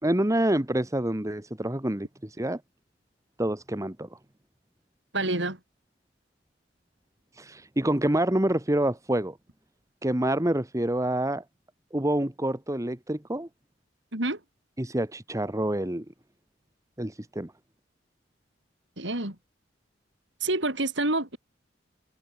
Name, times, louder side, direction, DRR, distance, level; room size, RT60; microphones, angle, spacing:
voice 1, 0.0-2.1 2.4-2.6 3.4-4.1 7.4-9.4 10.0-11.4 11.9-13.5 14.8-16.0 17.0-17.5, right 1 dB, 15° right, 1.5 m, -27 dB
voice 2, 5.1-5.6 14.1-14.4 19.0-19.4 20.4-21.4, right 2 dB, 65° right, 5.3 m, -27 dB
head